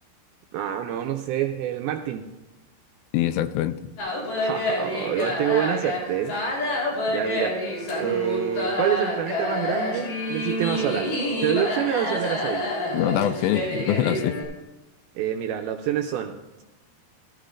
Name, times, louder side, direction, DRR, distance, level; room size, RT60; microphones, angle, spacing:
voice 1, 0.5-2.2 4.3-6.4 7.1-7.6 8.0-11.1 11.4-12.7 15.2-16.6, right 10 dB, 85° right, 4 dB, 2.2 m, -27 dB
voice 2, 3.1-3.8 12.9-14.4, left 12 dB, 85° left, 12 dB, 2.5 m, -24 dB
sound 1, 4.0-14.4, left 1 dB, 55° left, 4.7 m, -28 dB
14.5 x 14.0 x 2.5 m, 1.1 s
omnidirectional pair, 5.0 m